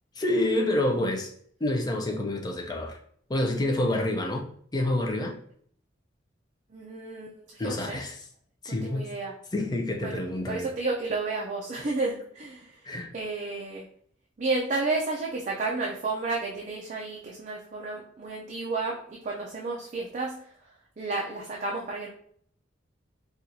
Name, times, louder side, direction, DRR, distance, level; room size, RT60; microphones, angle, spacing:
voice 1, 0.2-1.3 1.6-3.0 3.3-5.4 7.6-8.2 8.6-9.2 9.5-10.7 12.8-13.1, left 1 dB, 20° left, 1 dB, 0.4 m, -28 dB
voice 2, 6.7-8.0 8.8-9.3 10.0-12.7 13.1-13.9 14.4-20.4 21.0-22.1, right 3 dB, 40° right, -2 dB, 0.4 m, -32 dB
4.3 x 2.4 x 2.6 m, 0.62 s
head